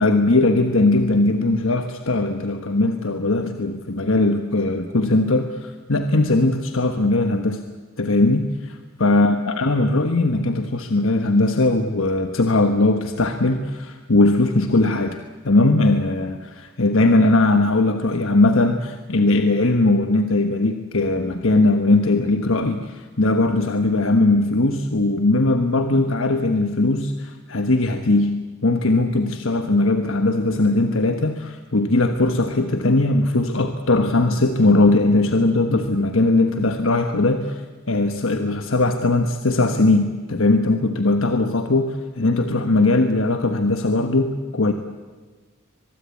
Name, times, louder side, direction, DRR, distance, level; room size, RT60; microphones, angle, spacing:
voice 1, 0.0-7.6 8.0-37.6 37.9-44.7, left 2 dB, 65° left, 7 dB, 1.3 m, -19 dB
23.5 x 22.0 x 8.4 m, 1.4 s
head